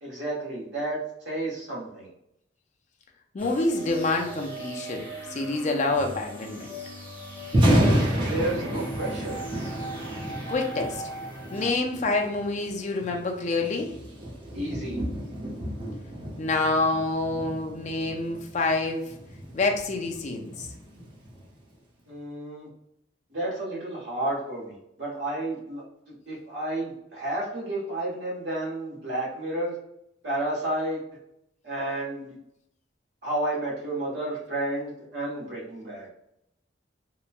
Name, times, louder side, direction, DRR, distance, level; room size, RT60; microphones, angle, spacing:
voice 1, 0.0-1.0 1.2-2.1 7.6-9.4 14.5-15.0 22.1-22.7 23.3-29.7 30.2-31.0 31.6-32.4 33.2-36.1, right 1 dB, 70° right, -5 dB, 1.2 m, -31 dB
voice 2, 3.3-6.7 10.5-11.0 11.5-13.9 16.4-19.1 19.5-20.7, left 2 dB, 40° left, 3 dB, 0.4 m, -27 dB
sound 1, 3.4-11.7, right 1 dB, 10° left, 0.8 m, -39 dB
Thunder, 7.4-21.5, equal, 30° right, 0.6 m, -30 dB
2.9 x 2.2 x 2.4 m, 0.78 s
head